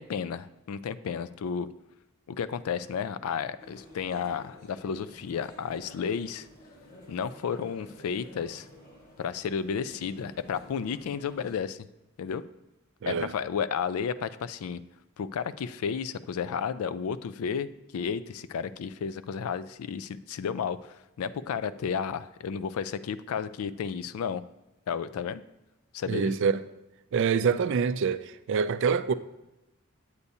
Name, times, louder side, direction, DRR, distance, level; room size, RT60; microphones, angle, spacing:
voice 1, 0.0-1.7 2.3-6.5 7.1-8.7 9.2-11.9 12.2-12.4 13.1-14.8 15.2-24.4 24.9-25.4 25.9-26.3, left 7 dB, 80° left, 0.3 m, -32 dB
sound 1, 3.6-11.6, equal, 45° left, 1.4 m, -51 dB
voice 2, 13.0-13.3 26.1-26.6 27.1-29.1, right 6 dB, 55° right, 0.3 m, -26 dB
8.3 x 8.1 x 2.7 m
head